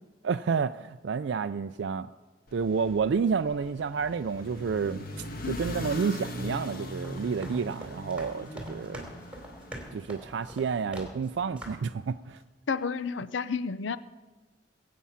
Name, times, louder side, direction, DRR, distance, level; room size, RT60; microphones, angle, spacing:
voice 1, 0.2-2.1 2.5-9.1 9.9-12.4, right 5 dB, 65° right, 11 dB, 0.4 m, -30 dB
sound 1, 2.5-10.8, left 1 dB, 55° left, 1.5 m, -40 dB
sound 2, 7.0-11.3 11.6-11.9, right 1 dB, 5° right, 3.1 m, -44 dB
voice 2, 12.7-14.0, left 5 dB, 75° left, 15 dB, 0.6 m, -31 dB
23.0 x 8.4 x 5.7 m, 1.2 s
head